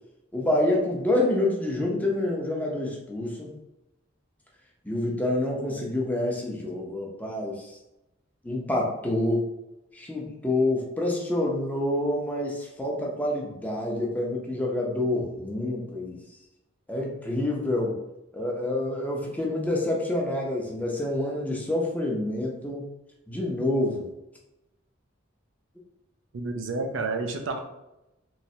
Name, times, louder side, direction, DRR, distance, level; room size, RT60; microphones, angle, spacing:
voice 1, 0.3-3.5 4.8-7.7 8.4-9.5 9.9-16.2 16.9-18.0 18.3-22.9 23.3-24.1, left 1 dB, 10° left, -2 dB, 0.6 m, -27 dB
voice 2, 26.3-27.6, right 3 dB, 70° right, 4 dB, 0.5 m, -30 dB
3.3 x 3.1 x 2.7 m, 0.92 s
head